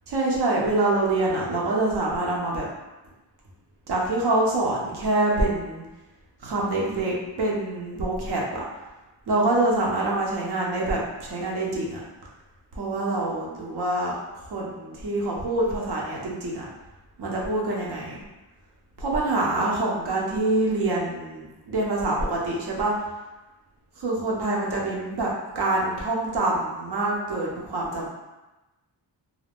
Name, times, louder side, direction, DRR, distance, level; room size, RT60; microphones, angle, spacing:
voice 1, 0.1-2.7 3.9-5.8 6.4-8.6 9.3-12.0 12.7-14.1 14.5-16.7 17.2-18.2 19.0-22.9 24.0-28.1, right 2 dB, 60° right, -3 dB, 0.7 m, -25 dB
2.4 x 2.1 x 3.4 m, 1.1 s
wide cardioid pair, 170°, 43 cm